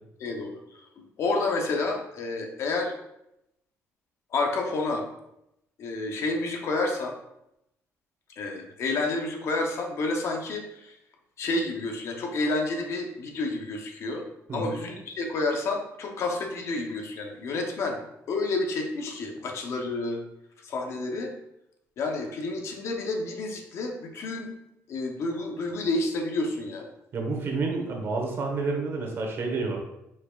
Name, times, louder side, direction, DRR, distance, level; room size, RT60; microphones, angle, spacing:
voice 1, 0.2-0.6 1.0-2.9 4.3-5.0 5.8-7.2 8.4-10.9 11.4-14.3 14.5-18.0 18.3-20.2 20.6-21.3 22.0-24.5 24.9-26.9, left 2 dB, 60° left, 2 dB, 0.8 m, -29 dB
voice 2, 27.1-29.8, right 3 dB, 50° right, 1 dB, 1.2 m, -29 dB
4.8 x 4.5 x 2.4 m, 0.84 s
cardioid pair, 110°, 5 cm